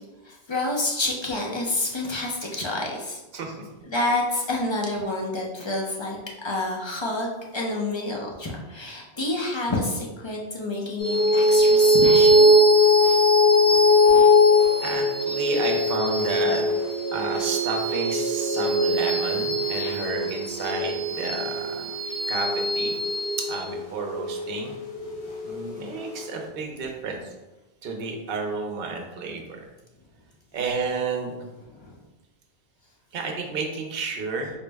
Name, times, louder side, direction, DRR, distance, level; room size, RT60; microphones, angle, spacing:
voice 1, 0.2-3.2 3.9-6.2 6.4-12.6 31.7-32.0, left 2 dB, 40° left, -2 dB, 0.4 m, -28 dB
voice 2, 3.3-3.7 14.8-16.6 17.1-21.9 22.3-23.0 23.4-24.8 25.4-27.3 27.8-29.7 30.5-31.3 33.1-34.5, right 4 dB, 65° right, 2 dB, 0.8 m, -31 dB
sound 1, 11.0-25.7, left 1 dB, 65° left, 1.1 m, -20 dB
4.3 x 2.0 x 3.3 m, 1.1 s
omnidirectional pair, 1.1 m